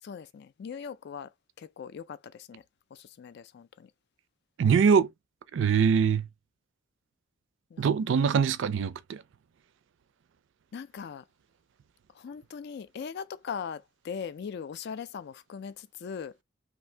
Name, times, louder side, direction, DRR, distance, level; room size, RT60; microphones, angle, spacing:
voice 1, 0.0-2.6 2.9-3.9 7.7-8.3 10.7-11.2 12.1-16.4, left 6 dB, 55° left, 0.3 m, -40 dB
voice 2, 4.6-5.1 5.5-6.3 7.8-9.2, right 6 dB, 65° right, 0.4 m, -23 dB
2.7 x 2.6 x 3.2 m
head